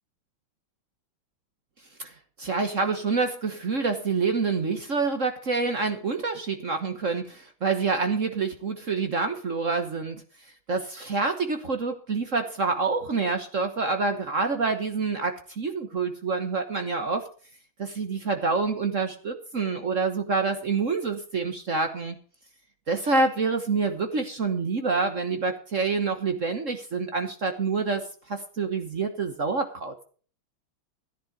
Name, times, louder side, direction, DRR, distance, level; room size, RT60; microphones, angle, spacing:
voice 1, 2.4-10.2 10.7-17.2 17.8-22.2 22.9-30.0, right 4 dB, 45° right, 7 dB, 1.4 m, -27 dB
14.0 x 10.5 x 4.8 m, 0.41 s
omnidirectional pair, 2.2 m